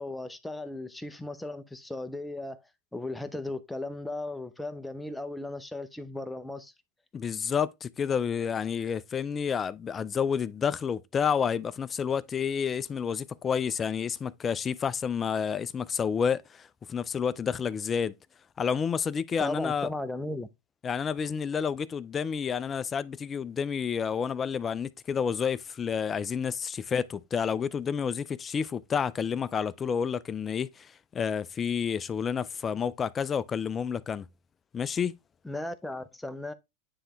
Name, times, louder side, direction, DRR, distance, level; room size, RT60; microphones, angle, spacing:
voice 1, 0.0-2.6 2.9-6.7 19.4-20.5 35.4-36.5, left 2 dB, 5° left, 0.8 m, -36 dB
voice 2, 7.1-18.2 18.6-19.9 20.8-34.3 34.7-35.1, left 7 dB, 25° left, 0.4 m, -30 dB
9.8 x 3.4 x 3.0 m
hypercardioid pair, 115°, 0 cm